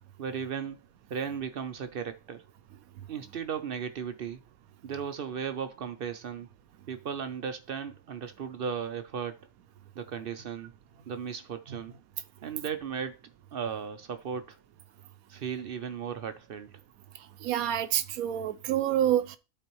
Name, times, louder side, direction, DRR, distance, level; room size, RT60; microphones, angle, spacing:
voice 1, 0.2-0.8 1.1-2.4 3.1-4.4 4.8-6.5 6.9-9.4 9.9-10.7 11.1-11.9 12.4-13.2 13.5-14.6 15.3-16.7, right 7 dB, 60° right, 0.6 m, -36 dB
voice 2, 17.4-19.4, right 11 dB, 85° right, 1.1 m, -27 dB
12.0 x 4.3 x 3.0 m
omnidirectional pair, 1.5 m